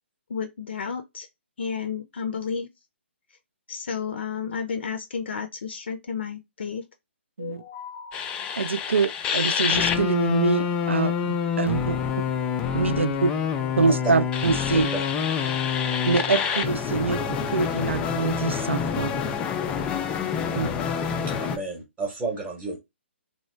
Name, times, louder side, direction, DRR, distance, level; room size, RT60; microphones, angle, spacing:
voice 1, 0.3-1.3 1.6-2.7 3.7-6.8 7.4-8.7, left 6 dB, 60° left, 0.6 m, -32 dB
sound 1, 8.1-21.6, left 7 dB, 15° left, 0.3 m, -27 dB
voice 2, 8.6-12.0 12.7-13.3 13.8-14.9 16.0-19.1 20.5-20.7, right 4 dB, 75° right, 0.4 m, -25 dB
voice 3, 21.4-22.8, right 3 dB, 10° right, 0.9 m, -32 dB
2.9 x 2.2 x 3.1 m
figure-of-eight pair, 135°, 7 cm